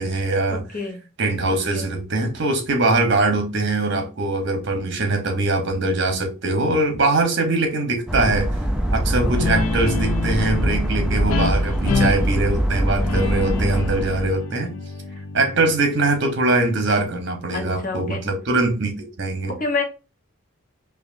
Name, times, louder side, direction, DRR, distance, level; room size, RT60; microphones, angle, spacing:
voice 1, 0.0-0.6 1.2-8.5 8.9-14.7 15.3-19.5, right 2 dB, 55° right, 1.0 m, -22 dB
voice 2, 0.5-1.0 1.7-1.9 9.4-9.5 17.5-18.2 19.5-19.8, left 3 dB, 40° left, 1.0 m, -28 dB
sound 1, 8.1-14.3, right 1 dB, 5° right, 0.4 m, -23 dB
Guitar, 9.3-16.5, left 4 dB, 80° left, 0.5 m, -28 dB
5.0 x 2.6 x 2.6 m
head